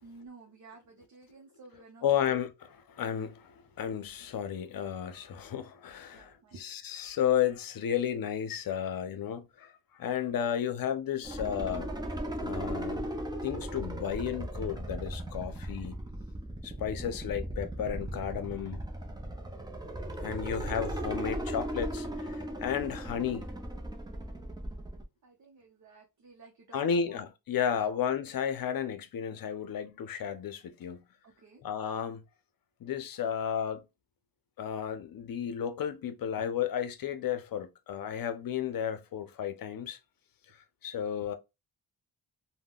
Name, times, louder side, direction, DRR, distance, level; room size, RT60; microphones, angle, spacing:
voice 1, 0.0-2.4 6.1-6.7 15.5-15.7 25.2-27.2 27.8-28.0 31.2-31.6 36.4-36.5, right 3 dB, 50° right, 0.7 m, -53 dB
voice 2, 2.0-2.5 2.9-11.9 12.4-13.1 13.4-16.0 16.6-18.8 20.2-23.5 26.7-31.0 31.6-32.2 32.8-33.9 34.6-40.0 40.8-41.3, left 8 dB, 65° left, 0.6 m, -33 dB
sound 1, 11.2-25.0, right 1 dB, 10° right, 0.5 m, -37 dB
3.6 x 2.2 x 2.3 m
wide cardioid pair, 100°, 38 cm